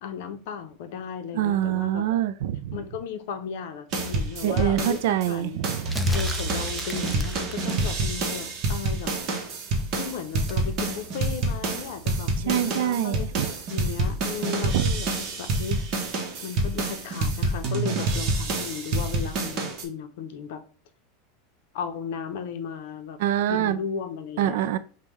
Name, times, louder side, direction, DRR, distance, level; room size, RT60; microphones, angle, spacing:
voice 1, 0.0-2.0 2.7-5.6 6.1-9.1 9.9-15.8 16.4-20.6 21.7-23.2 23.5-24.6, left 6 dB, 65° left, 0.6 m, -35 dB
voice 2, 1.3-2.8 4.4-5.9 12.5-13.5 14.7-14.8 23.2-23.8 24.4-24.8, right 11 dB, 70° right, 0.3 m, -25 dB
sound 1, 3.9-5.3 5.6-19.8, right 2 dB, 40° right, 0.8 m, -27 dB
sound 2, 5.9-8.0 10.5-10.7, equal, ahead, 0.4 m, -38 dB
5.2 x 2.2 x 3.1 m
supercardioid pair, 160°, 0 cm